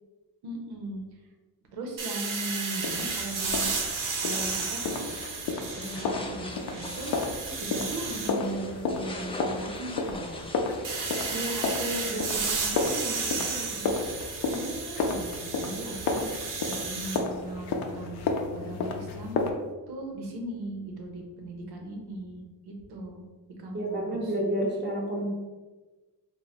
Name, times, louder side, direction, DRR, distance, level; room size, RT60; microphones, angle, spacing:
voice 1, 0.4-1.0 1.7-3.7 4.2-5.0 5.8-7.1 7.6-10.4 11.3-14.0 14.5-19.4 19.9-23.2 23.6-24.4, right 1 dB, 85° right, 2 dB, 0.9 m, -38 dB
sound 1, 2.0-6.3 6.7-8.3 10.8-17.2, right 4 dB, 55° right, 0.8 m, -33 dB
sound 2, 2.8-19.5, left 3 dB, 85° left, 0.6 m, -33 dB
sound 3, 3.4-11.5, left 2 dB, 15° left, 0.4 m, -43 dB
voice 2, 23.7-25.3, right 1 dB, 30° right, -1 dB, 1.0 m, -29 dB
3.1 x 2.2 x 4.0 m, 1.2 s
cardioid pair, 100°, 38 cm